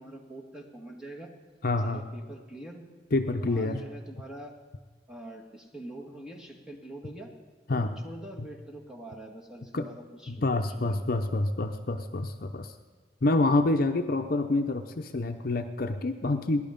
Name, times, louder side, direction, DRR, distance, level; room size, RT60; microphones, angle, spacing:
voice 1, 0.0-1.3 1.8-2.8 3.2-4.5 5.1-7.3 7.7-11.1, right 1 dB, 5° right, -1 dB, 2.1 m, -44 dB
voice 2, 1.6-2.1 3.1-3.8 7.7-7.9 9.7-9.9 10.3-12.7 13.2-16.6, left 2 dB, 55° left, 6 dB, 0.7 m, -27 dB
19.0 x 11.5 x 5.2 m, 1.4 s
head